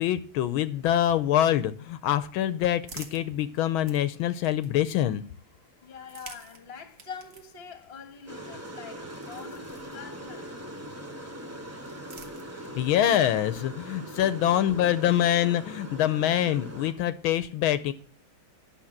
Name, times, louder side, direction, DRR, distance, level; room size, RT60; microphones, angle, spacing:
voice 1, 0.0-5.2 12.8-17.9, left 11 dB, 80° left, 1.5 m, -25 dB
sound 1, 2.8-5.1 5.9-10.5 11.5-12.9, right 4 dB, 45° right, 1.6 m, -51 dB
voice 2, 5.8-10.6 14.0-14.1, left 6 dB, 35° left, 1.5 m, -44 dB
sound 2, 8.3-16.9, right 1 dB, 10° right, 0.7 m, -41 dB
10.0 x 6.4 x 7.2 m
omnidirectional pair, 2.2 m